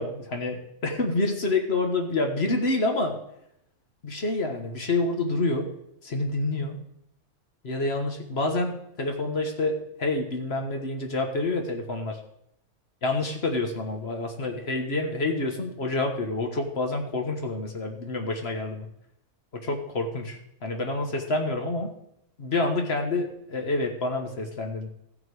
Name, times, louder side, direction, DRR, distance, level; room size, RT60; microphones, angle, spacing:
voice 1, 0.0-3.2 4.0-5.7 6.0-6.8 7.6-12.2 13.0-18.9 19.5-21.9 22.4-24.9, left 2 dB, 45° left, 3 dB, 1.4 m, -28 dB
15.5 x 5.8 x 4.7 m, 0.77 s
omnidirectional pair, 1.6 m